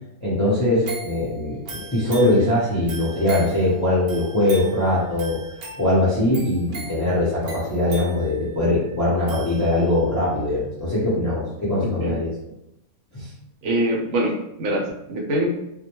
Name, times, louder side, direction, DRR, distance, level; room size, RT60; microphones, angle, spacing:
voice 1, 0.2-5.4 5.8-12.3 13.1-13.3, left 1 dB, 25° left, -10 dB, 0.4 m, -21 dB
sound 1, 0.8-10.1 10.6-10.7, right 2 dB, 60° right, 0.7 m, -39 dB
voice 2, 11.8-12.2 13.6-15.5, right 1 dB, 75° right, -1 dB, 1.0 m, -24 dB
2.2 x 2.1 x 2.9 m, 0.87 s
omnidirectional pair, 1.4 m